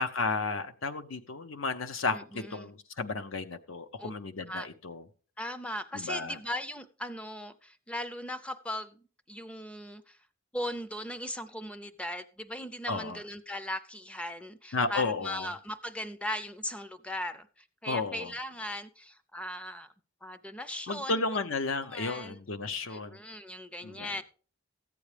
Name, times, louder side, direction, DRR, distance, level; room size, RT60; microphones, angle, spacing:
voice 1, 0.0-5.0 5.9-6.4 12.9-13.2 14.7-15.5 17.9-18.3 20.9-23.2 23.8-24.1, left 3 dB, 70° left, 0.7 m, -33 dB
voice 2, 2.1-2.7 4.0-4.1 4.5-4.7 5.4-10.2 10.5-17.5 17.8-19.9 20.2-21.2 21.8-22.4 22.9-24.2, left 1 dB, 5° left, 0.5 m, -38 dB
14.5 x 8.5 x 3.3 m
head